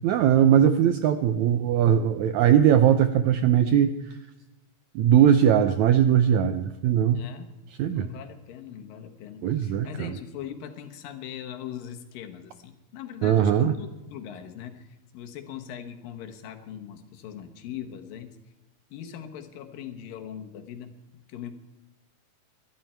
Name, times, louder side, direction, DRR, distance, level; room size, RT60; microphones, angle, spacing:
voice 1, 0.0-4.2 4.9-7.2 7.8-8.1 9.4-10.1 13.2-13.7, right 9 dB, 80° right, 10 dB, 1.7 m, -20 dB
voice 2, 7.1-7.5 7.9-18.4 18.9-20.9 21.3-21.5, left 9 dB, 80° left, 5 dB, 3.0 m, -40 dB
21.5 x 13.0 x 4.5 m, 1.1 s
omnidirectional pair, 4.0 m